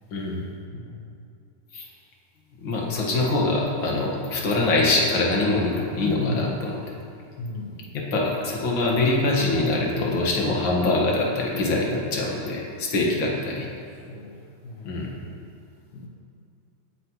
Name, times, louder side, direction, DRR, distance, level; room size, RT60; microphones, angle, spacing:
voice 1, 0.1-0.4 1.7-1.9 2.6-6.8 7.9-13.7 14.8-15.1, left 2 dB, 45° left, -2 dB, 2.2 m, -24 dB
voice 2, 0.7-1.1 2.7-3.1 6.0-6.6 7.4-7.9 14.1-15.2 15.9-16.1, left 2 dB, 85° left, -5 dB, 2.6 m, -35 dB
18.5 x 9.9 x 3.1 m, 2.4 s
omnidirectional pair, 3.5 m